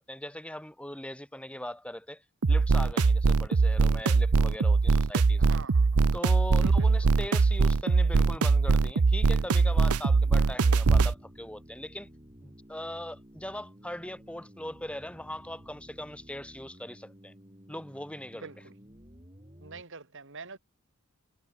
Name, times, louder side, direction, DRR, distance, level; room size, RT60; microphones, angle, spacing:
voice 1, 0.0-5.5 6.1-12.1 12.4-17.3 17.7-18.5, left 1 dB, 5° left, 6.0 m, -40 dB
sound 1, 2.4-11.1, right 4 dB, 90° right, 0.7 m, -22 dB
voice 2, 5.4-6.0 6.6-7.1 18.4-18.7 19.6-20.6, right 4 dB, 60° right, 3.5 m, -45 dB
sound 2, 9.3-19.8, equal, 25° right, 4.9 m, -53 dB
head